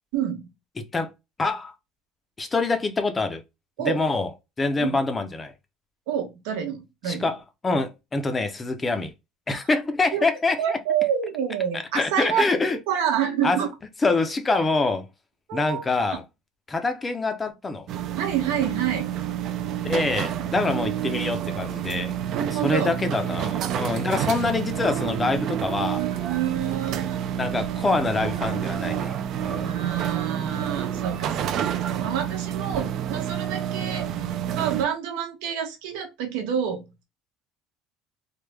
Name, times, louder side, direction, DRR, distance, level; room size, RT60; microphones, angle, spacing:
voice 1, 0.1-0.5 3.8-4.0 4.8-5.0 6.1-7.3 10.1-10.2 10.6-12.5 12.9-13.7 15.5-15.8 16.1-16.2 18.2-19.1 22.3-22.9 25.2-25.3 25.9-27.2 29.6-36.9, right 9 dB, 90° right, 1.0 m, -28 dB
voice 2, 1.4-1.7 2.4-3.4 3.8-4.3 4.6-5.5 7.1-7.4 7.6-9.1 9.5-10.8 11.7-12.8 13.4-13.6 14.0-15.1 15.5-16.2 16.7-17.9 19.8-22.1 22.5-26.0 27.4-29.1 29.4-29.8, left 3 dB, 15° left, 0.5 m, -25 dB
sound 1, 17.9-34.8, right 10 dB, 45° right, 0.3 m, -29 dB
3.3 x 2.1 x 3.3 m
cardioid pair, 160°, 0 cm